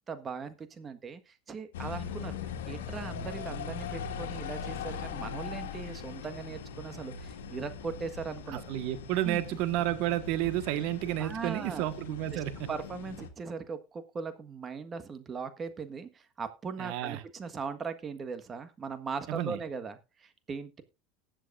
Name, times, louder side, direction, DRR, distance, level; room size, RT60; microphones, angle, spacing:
voice 1, 0.1-2.4 2.7-8.6 9.2-9.6 11.2-11.9 12.3-20.8, right 5 dB, 30° right, 10 dB, 1.4 m, -39 dB
sound 1, 1.7-13.3, left 6 dB, 85° left, 1.7 m, -40 dB
voice 2, 8.5-12.7 16.8-17.2 19.3-19.6, right 14 dB, 65° right, 11 dB, 1.4 m, -31 dB
19.0 x 7.7 x 2.5 m, 0.29 s
supercardioid pair, 105°, 0 cm